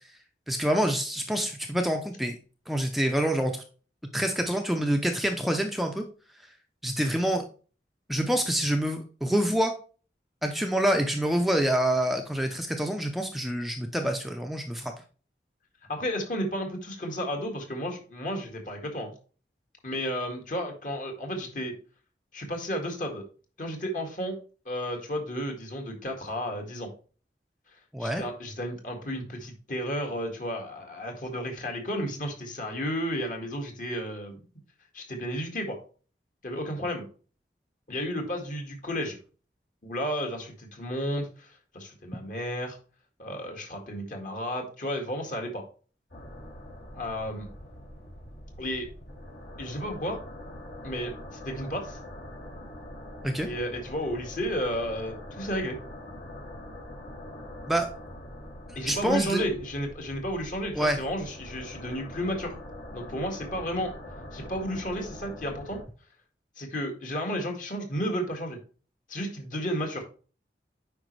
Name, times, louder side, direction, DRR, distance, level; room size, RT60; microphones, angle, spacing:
voice 1, 0.5-2.3 2.7-3.6 4.1-6.0 6.8-7.4 8.1-9.7 10.4-14.9 27.9-28.2 53.2-53.5 57.7-57.9 58.7-59.4 60.8-61.0, right 1 dB, ahead, 3 dB, 0.5 m, -26 dB
voice 2, 15.9-19.1 19.8-21.7 22.3-23.3 23.6-24.4 24.7-26.9 28.0-34.4 34.9-35.8 36.4-37.1 37.9-39.2 39.8-42.8 43.2-45.6 46.9-47.5 48.6-48.9 49.6-50.2 50.8-52.0 53.4-55.8 58.8-62.6 62.9-63.9 64.3-65.8 66.6-68.6 69.1-70.0, equal, 50° left, 3 dB, 1.9 m, -32 dB
sound 1, 46.1-65.8, left 1 dB, 70° left, 3.3 m, -43 dB
9.0 x 5.2 x 3.2 m, 0.38 s
head